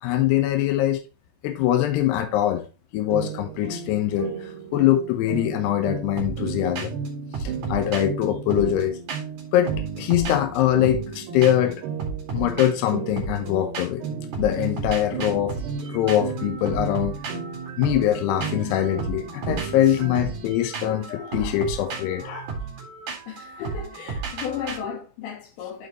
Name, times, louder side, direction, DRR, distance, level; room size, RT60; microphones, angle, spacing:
voice 1, 0.0-1.0 1.4-2.6 2.9-7.0 7.4-9.0 9.5-11.8 12.3-14.0 14.4-15.6 15.8-17.2 17.8-22.5, left 12 dB, 80° left, 2.5 m, -23 dB
sound 1, 3.1-20.5, right 5 dB, 65° right, 3.1 m, -34 dB
sound 2, 6.2-6.5 6.8-7.1 7.3-9.4 9.7-11.2 11.4-11.7 12.0-14.1 14.3-24.8, right 5 dB, 50° right, 2.9 m, -34 dB
voice 2, 23.3-25.9, left 8 dB, 65° left, 3.9 m, -35 dB
11.5 x 4.7 x 3.0 m
omnidirectional pair, 6.0 m